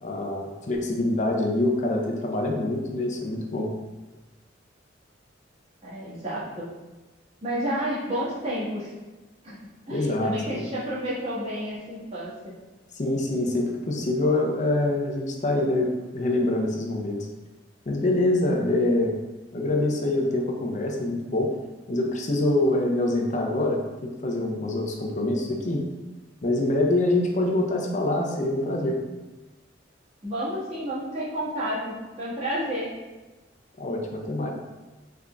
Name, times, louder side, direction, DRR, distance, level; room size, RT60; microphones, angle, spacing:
voice 1, 0.0-3.7 9.9-10.6 13.0-17.2 17.9-19.1 19.5-21.5 21.9-25.8 26.4-29.0 33.8-34.5, left 2 dB, 40° left, 1 dB, 0.5 m, -25 dB
voice 2, 5.8-6.7 7.4-8.9 9.4-9.6 9.9-12.5 30.2-32.9, equal, 35° right, -9 dB, 1.3 m, -30 dB
3.7 x 3.4 x 2.3 m, 1.2 s
head